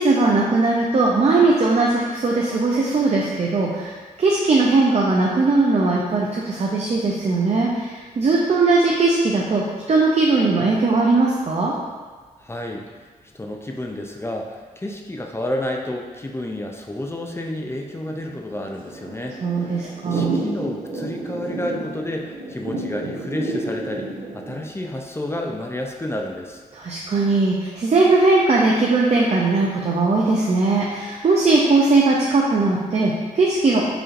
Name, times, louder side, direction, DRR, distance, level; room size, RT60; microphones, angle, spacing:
voice 1, 0.0-11.7 19.4-20.4 26.7-33.8, right 3 dB, 45° right, -3 dB, 0.5 m, -19 dB
voice 2, 12.4-12.9 13.3-26.6, left 1 dB, 15° left, 1 dB, 0.5 m, -30 dB
Thunder / Rain, 17.6-24.6, right 2 dB, 60° right, 0.9 m, -31 dB
4.9 x 3.0 x 2.5 m, 1.4 s
cardioid pair, 65°, 16 cm